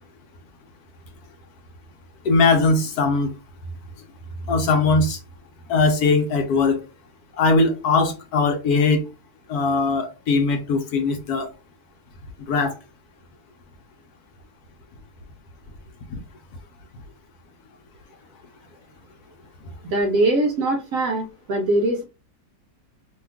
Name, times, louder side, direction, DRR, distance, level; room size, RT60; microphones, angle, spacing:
voice 1, 2.2-3.3 4.5-5.2 5.7-6.8 7.4-9.0 9.5-11.5 12.5-12.8 16.1-16.2, left 3 dB, 70° left, 1.0 m, -20 dB
voice 2, 19.9-22.0, right 2 dB, 70° right, 0.8 m, -22 dB
2.9 x 2.3 x 3.4 m
omnidirectional pair, 1.9 m